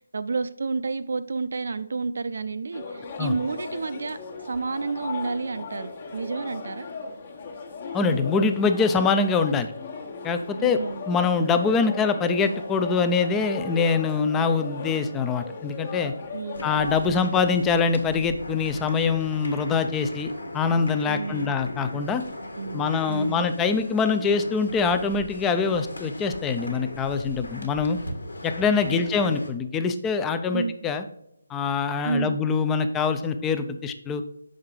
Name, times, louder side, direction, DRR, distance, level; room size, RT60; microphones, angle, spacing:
voice 1, 0.0-4.2 4.4-6.9 10.6-11.0 16.3-16.7 17.0-17.4 21.1-21.5 22.6-23.5 28.7-29.0 30.5-30.7 32.0-32.4, right 4 dB, 65° right, 13 dB, 0.5 m, -30 dB
sound 1, 2.7-17.0, left 4 dB, 40° left, 1.1 m, -37 dB
voice 2, 7.9-9.7 10.2-10.8 11.1-16.1 16.6-22.2 22.7-28.0 28.4-31.0 31.5-34.2, left 5 dB, 10° left, 8 dB, 0.4 m, -24 dB
sound 2, 16.5-29.5, left 1 dB, 80° left, 1.5 m, -38 dB
6.4 x 4.7 x 3.8 m, 0.79 s
figure-of-eight pair, 155°, 0 cm